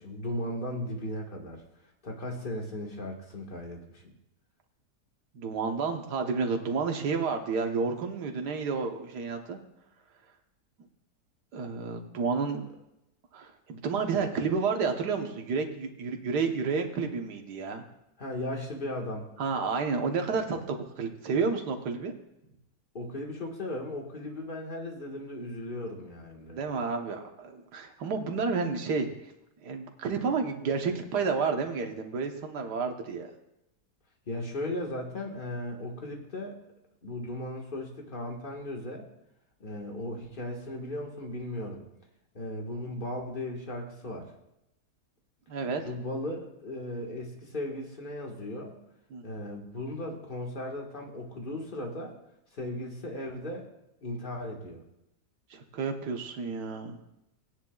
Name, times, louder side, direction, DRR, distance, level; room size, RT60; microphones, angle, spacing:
voice 1, 0.0-1.6 2.0-4.1 18.2-19.3 22.9-26.6 34.3-36.6 37.0-39.1 39.6-41.8 42.3-44.3 45.8-48.8 49.2-52.1 52.5-53.6 54.0-54.8, left 1 dB, 30° left, 0 dB, 1.7 m, -36 dB
voice 2, 5.3-9.6 11.5-12.7 13.3-17.9 19.4-22.1 26.5-29.1 29.6-33.3 45.5-45.8 49.1-49.2 55.5-57.0, right 5 dB, 80° right, 4 dB, 1.7 m, -30 dB
18.5 x 10.0 x 2.4 m, 0.85 s
omnidirectional pair, 1.7 m